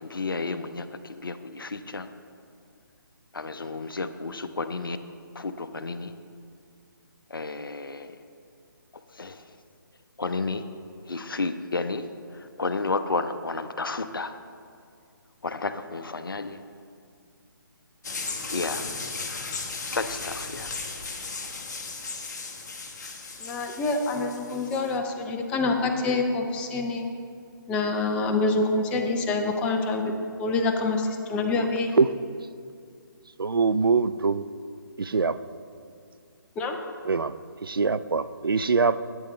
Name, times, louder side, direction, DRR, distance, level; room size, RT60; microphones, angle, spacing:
voice 1, 0.0-0.9 1.2-2.1 3.3-5.0 5.4-6.1 7.3-8.1 9.2-9.3 10.2-10.6 11.1-12.0 12.6-14.3 15.4-16.6 18.5-18.8 19.9-20.7, left 3 dB, 75° left, 10 dB, 0.6 m, -31 dB
sound 1, 18.0-25.0, left 4 dB, 50° left, 1.0 m, -36 dB
voice 2, 23.4-27.1 27.7-30.1 30.4-31.9 36.6-36.8, left 3 dB, 10° left, 4 dB, 0.5 m, -26 dB
voice 3, 33.4-34.4 35.0-35.4 37.0-39.0, right 4 dB, 80° right, 14 dB, 0.4 m, -23 dB
12.0 x 7.9 x 3.2 m, 2.3 s
figure-of-eight pair, 145°, 12 cm